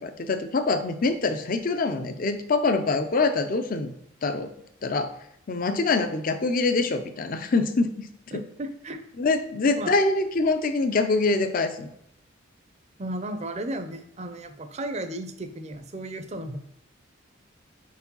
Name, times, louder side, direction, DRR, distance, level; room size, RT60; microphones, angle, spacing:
voice 1, 0.0-3.9 4.2-4.5 4.8-5.1 5.5-8.1 8.3-8.4 9.2-11.9, left 3 dB, 45° left, 8 dB, 0.5 m, -24 dB
voice 2, 8.3-9.0 9.8-9.9 13.0-16.6, right 1 dB, 35° right, 8 dB, 0.6 m, -34 dB
4.7 x 4.5 x 5.4 m, 0.74 s
head